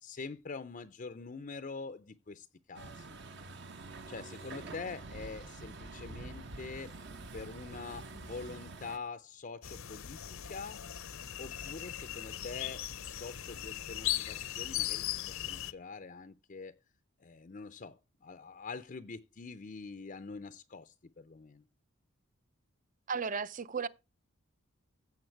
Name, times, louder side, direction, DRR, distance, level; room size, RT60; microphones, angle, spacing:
voice 1, 0.0-3.2 4.1-7.0 7.3-10.9 11.4-16.7 17.2-21.6, left 4 dB, 40° left, 0.5 m, -45 dB
Truck, 2.7-9.0, right 2 dB, 55° right, 1.0 m, -46 dB
sound 1, 9.6-15.7, left 13 dB, 70° left, 0.7 m, -38 dB
voice 2, 23.1-23.9, right 5 dB, 35° right, 0.5 m, -34 dB
15.5 x 7.3 x 4.5 m
head